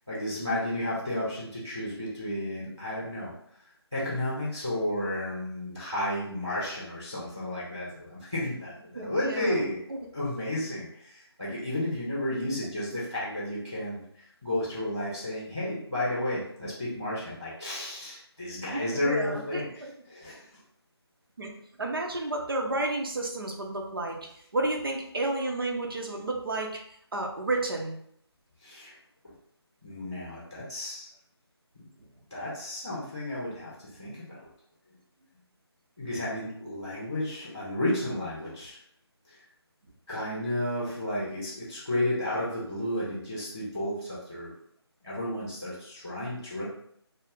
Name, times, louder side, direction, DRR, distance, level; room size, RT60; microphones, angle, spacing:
voice 1, 0.1-3.3 3.9-9.8 10.1-20.4 28.6-28.9 29.8-31.1 31.7-31.9 32.3-33.7 34.0-34.4 36.0-38.8 39.3-39.4 40.1-44.5 45.0-46.7, left 1 dB, 5° right, -21 dB, 0.3 m, -32 dB
voice 2, 8.9-9.6 18.7-19.9 21.4-21.5 21.8-24.2 24.5-26.8 27.1-28.0 32.0-32.1 34.0-34.1, right 2 dB, 55° right, 1 dB, 0.6 m, -31 dB
2.4 x 2.0 x 3.8 m, 0.69 s
figure-of-eight pair, 160°, 14 cm